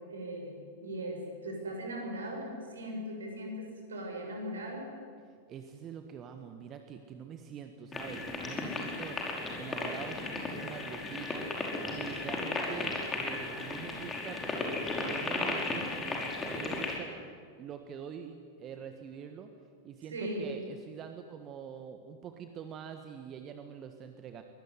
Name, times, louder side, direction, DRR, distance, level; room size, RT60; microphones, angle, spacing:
voice 1, 0.1-4.9 20.1-20.5, right 1 dB, 70° right, 2 dB, 6.7 m, -39 dB
voice 2, 5.5-14.7 15.0-17.3 17.6-19.5 19.8-24.4, right 7 dB, 30° right, 7 dB, 1.6 m, -45 dB
sound 1, 7.9-17.0, left 3 dB, 20° left, 5.1 m, -35 dB
23.0 x 19.5 x 9.8 m, 2.1 s
figure-of-eight pair, 90°, 0 cm